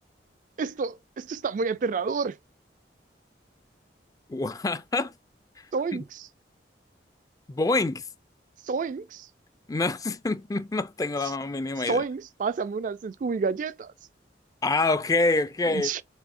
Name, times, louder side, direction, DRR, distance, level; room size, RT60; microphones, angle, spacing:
voice 1, 0.6-2.4 5.7-6.3 8.7-9.3 11.9-13.9 15.7-16.0, right 5 dB, 45° right, 0.3 m, -29 dB
voice 2, 4.3-5.1 5.9-6.0 7.5-8.0 9.7-12.0 14.6-16.0, left 3 dB, 20° left, 0.4 m, -26 dB
6.2 x 2.7 x 2.5 m
head